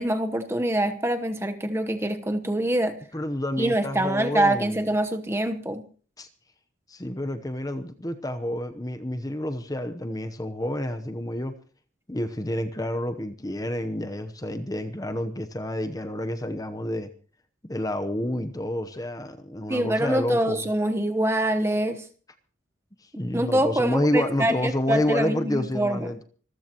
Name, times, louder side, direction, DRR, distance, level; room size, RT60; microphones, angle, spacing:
voice 1, 0.0-3.0 3.6-5.9 19.7-22.0 23.3-26.1, right 1 dB, 15° right, 1.0 m, -25 dB
voice 2, 3.1-4.8 6.2-6.3 6.9-11.5 12.1-17.1 17.6-20.6 23.0-26.2, left 1 dB, 20° left, 0.9 m, -29 dB
26.0 x 14.5 x 3.0 m
head